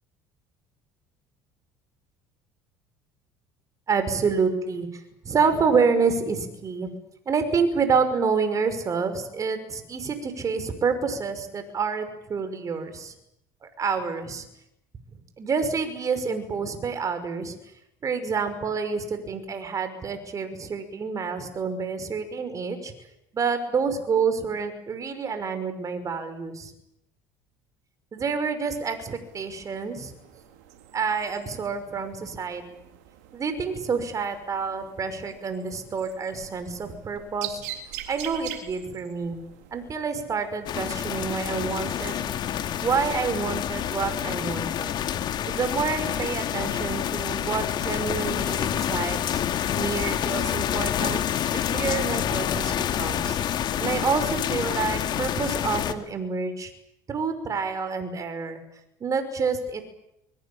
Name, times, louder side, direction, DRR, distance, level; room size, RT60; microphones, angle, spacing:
voice 1, 3.9-6.9 7.3-13.1 13.6-14.5 15.4-17.6 18.0-22.9 23.3-26.7 28.1-30.1 30.9-32.9 33.3-37.6 38.1-39.4 39.7-42.3 42.8-45.0 45.5-49.4 49.8-51.2 51.5-53.4 53.8-56.7 57.1-58.6 59.0-59.8, right 5 dB, 35° right, 9 dB, 5.6 m, -28 dB
sound 1, 29.2-44.0, right 10 dB, 85° right, 3.8 m, -44 dB
sound 2, 40.7-55.9, left 10 dB, 55° left, 2.3 m, -28 dB
24.0 x 23.0 x 8.8 m, 0.85 s
supercardioid pair, 90°, 9 cm